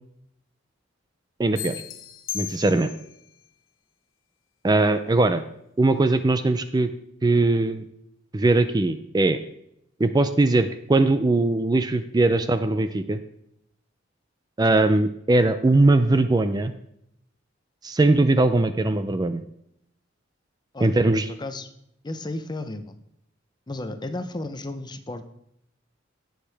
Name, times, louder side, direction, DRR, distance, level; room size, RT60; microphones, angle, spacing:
voice 1, 1.4-1.8 2.3-2.9 4.6-5.4 5.8-6.9 7.2-7.8 8.3-9.4 10.0-13.2 14.6-16.7 17.8-19.4 20.8-21.3, right 2 dB, 20° right, 10 dB, 0.4 m, -20 dB
sound 1, 1.6-3.2, left 13 dB, 80° left, 0.7 m, -36 dB
voice 2, 22.0-22.9 23.7-25.3, left 2 dB, 20° left, 9 dB, 0.7 m, -33 dB
17.0 x 6.5 x 3.4 m, 0.75 s
head